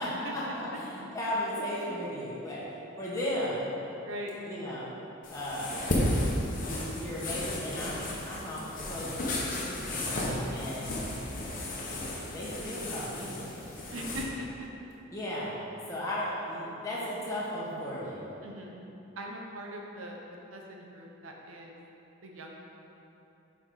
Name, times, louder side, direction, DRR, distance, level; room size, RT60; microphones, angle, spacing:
voice 1, 0.0-2.6 3.0-3.7 4.4-4.9 5.3-5.8 6.6-10.0 10.5-11.0 12.0-13.6 15.1-15.5 15.9-18.3, equal, 15° left, -8 dB, 1.3 m, -35 dB
sound 1, 5.2-14.2, left 1 dB, 40° left, 1.0 m, -33 dB
voice 2, 10.3-10.7 13.9-14.7 18.4-18.8 19.2-20.2 20.5-21.8 22.2-22.5, equal, 80° right, 0 dB, 0.8 m, -41 dB
7.1 x 4.8 x 4.0 m, 3.0 s
head